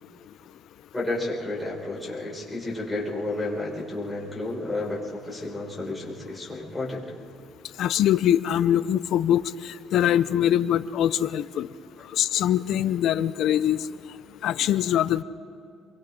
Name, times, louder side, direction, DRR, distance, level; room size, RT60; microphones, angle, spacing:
voice 1, 0.9-7.0, left 2 dB, 10° left, -5 dB, 6.0 m, -31 dB
voice 2, 7.8-11.7 12.1-13.8 14.4-15.2, left 11 dB, 70° left, 14 dB, 0.7 m, -23 dB
29.5 x 23.5 x 3.9 m, 2.6 s
cardioid pair, 120°, 0 cm